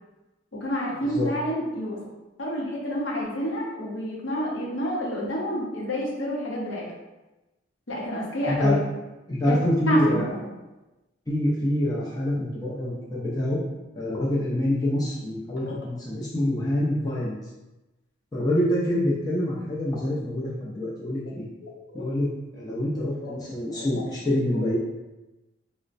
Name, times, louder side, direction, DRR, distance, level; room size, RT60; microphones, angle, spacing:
voice 1, 0.5-2.0 2.4-6.9 7.9-8.8 9.4-9.6 9.9-10.4 15.7-15.8 21.6-22.1 23.2-23.3 23.7-23.9, equal, 65° left, -4 dB, 0.8 m, -29 dB
voice 2, 8.5-8.8 9.3-10.3 11.3-13.6 13.9-17.4 18.3-21.5 21.9-24.8, left 1 dB, 20° left, -7 dB, 0.5 m, -26 dB
4.1 x 2.1 x 2.5 m, 1.0 s
head